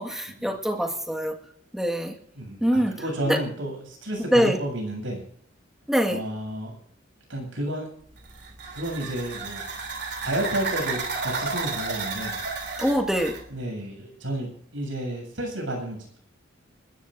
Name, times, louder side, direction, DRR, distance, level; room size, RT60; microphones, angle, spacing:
voice 1, 0.0-1.4 1.7-2.2 2.6-2.9 3.3-3.4 4.3-4.6 5.9-6.2 12.8-13.4, equal, ahead, 2 dB, 1.8 m, -23 dB
voice 2, 2.3-5.2 6.1-6.7 7.3-7.9 8.7-9.6 10.2-12.4 13.5-16.2, right 1 dB, 70° right, 2 dB, 7.8 m, -31 dB
sound 1, 8.2-13.5, right 4 dB, 55° right, 3.3 m, -32 dB
29.0 x 13.5 x 2.7 m, 0.66 s
head